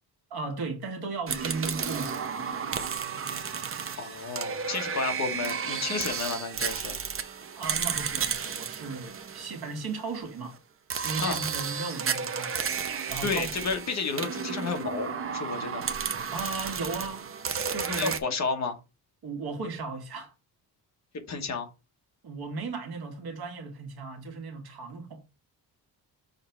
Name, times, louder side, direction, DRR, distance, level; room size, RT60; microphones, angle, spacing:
voice 1, 0.3-2.4 7.5-10.6 11.0-12.7 13.1-13.5 16.3-17.3 17.7-18.2 19.2-20.3 22.2-25.2, right 4 dB, 65° right, 1.7 m, -36 dB
sound 1, 1.3-10.1 10.9-18.2, right 6 dB, 35° right, 0.6 m, -33 dB
voice 2, 4.0-7.0 11.2-11.4 13.2-15.8 17.9-18.8 21.1-21.7, left 4 dB, 40° left, 1.2 m, -31 dB
6.5 x 3.2 x 4.5 m
wide cardioid pair, 180°, 41 cm